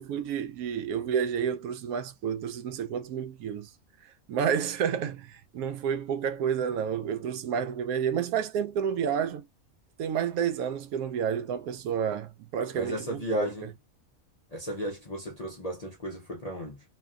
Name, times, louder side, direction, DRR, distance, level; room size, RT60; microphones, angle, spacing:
voice 1, 0.0-3.7 4.3-9.4 10.0-13.5, right 8 dB, 80° right, 1.0 m, -30 dB
voice 2, 12.7-13.7 14.5-16.8, left 1 dB, 50° left, 0.4 m, -35 dB
3.1 x 2.2 x 2.3 m
omnidirectional pair, 1.5 m